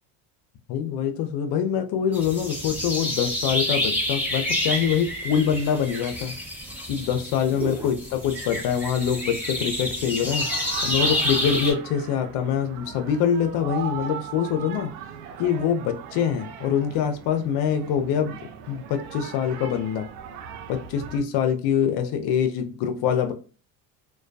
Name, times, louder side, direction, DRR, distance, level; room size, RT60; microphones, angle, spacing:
voice 1, 0.7-6.3 6.9-10.5 10.8-14.9 15.4-18.4 18.7-20.1 20.7-23.3, left 8 dB, 60° left, 0.6 m, -24 dB
sound 1, 2.1-11.7, left 1 dB, 5° right, 0.8 m, -28 dB
sound 2, 10.3-21.2, right 7 dB, 80° right, 0.6 m, -39 dB
2.2 x 2.2 x 2.5 m
supercardioid pair, 80°, 46 cm